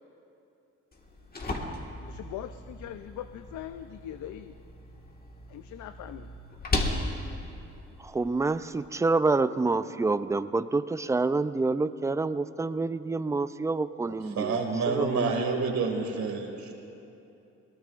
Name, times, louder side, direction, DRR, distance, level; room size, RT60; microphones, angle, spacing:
sound 1, 0.9-8.9, left 2 dB, 30° left, 1.7 m, -36 dB
voice 1, 2.1-4.5 5.5-6.3, left 11 dB, 75° left, 10 dB, 0.5 m, -41 dB
voice 2, 8.0-14.6 14.9-15.3, right 3 dB, 10° right, 13 dB, 0.4 m, -27 dB
voice 3, 14.0-16.7, right 4 dB, 70° right, 2 dB, 2.3 m, -29 dB
22.5 x 18.5 x 2.5 m, 2.8 s
cardioid pair, 90°, 30 cm